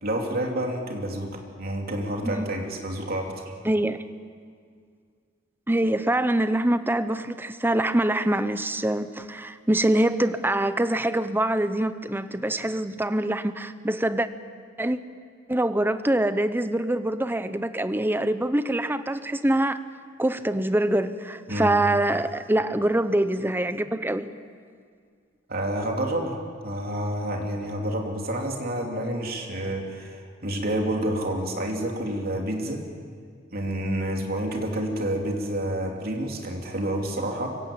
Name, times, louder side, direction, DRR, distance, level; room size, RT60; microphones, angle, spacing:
voice 1, 0.0-3.4 21.5-21.7 25.5-26.4 26.6-32.8 33.5-37.6, right 1 dB, 50° right, 2 dB, 3.1 m, -29 dB
voice 2, 3.6-4.1 5.7-14.3 14.8-15.0 15.5-19.8 20.2-24.3, right 1 dB, 10° right, 12 dB, 0.8 m, -24 dB
24.0 x 16.0 x 8.8 m, 2.1 s
head